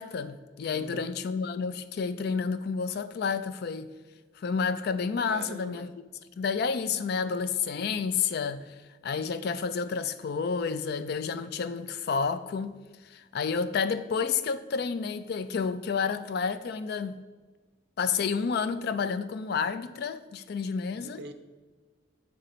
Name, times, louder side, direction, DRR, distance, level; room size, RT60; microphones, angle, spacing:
voice 1, 0.0-3.9 4.4-5.9 6.4-8.8 9.0-12.8 13.0-17.2 18.0-21.2, left 5 dB, 55° left, 0.3 m, -30 dB
voice 2, 0.7-1.1 5.3-5.8 20.9-21.3, right 3 dB, 55° right, 0.5 m, -43 dB
8.3 x 3.3 x 3.9 m
head